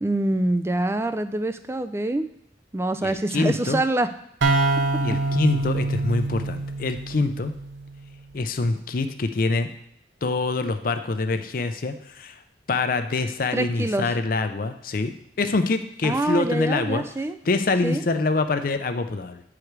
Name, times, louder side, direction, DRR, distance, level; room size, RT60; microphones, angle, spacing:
voice 1, 0.0-2.3 2.7-4.1 13.5-14.1 16.0-17.4 17.8-18.0, right 1 dB, 15° right, 10 dB, 0.3 m, -25 dB
voice 2, 3.0-3.8 5.0-7.5 8.3-9.7 10.2-12.4 12.7-17.0 17.4-19.4, left 3 dB, 50° left, 9 dB, 0.5 m, -25 dB
sound 1, 4.4-8.1, right 3 dB, 85° right, 0.8 m, -25 dB
8.5 x 4.9 x 4.6 m, 0.72 s
head